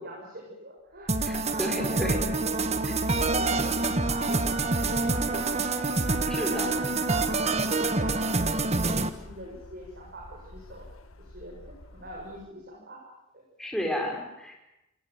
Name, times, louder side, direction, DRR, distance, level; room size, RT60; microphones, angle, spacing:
voice 1, 0.0-4.4 4.8-5.6 6.0-10.9 11.2-13.0 13.3-13.4, right 1 dB, 50° right, -2 dB, 7.1 m, -43 dB
Truck, 1.1-12.5, left 1 dB, 70° left, 1.4 m, -44 dB
sound 1, 1.1-9.1, right 3 dB, 30° right, 1.5 m, -27 dB
voice 2, 1.2-2.2 2.8-2.9 6.3-6.7 13.6-14.6, equal, ahead, 0 dB, 5.3 m, -32 dB
Wind instrument woodwind instrument, 4.5-8.8, right 4 dB, 90° right, 3.7 m, -41 dB
28.0 x 19.0 x 9.4 m, 0.90 s
head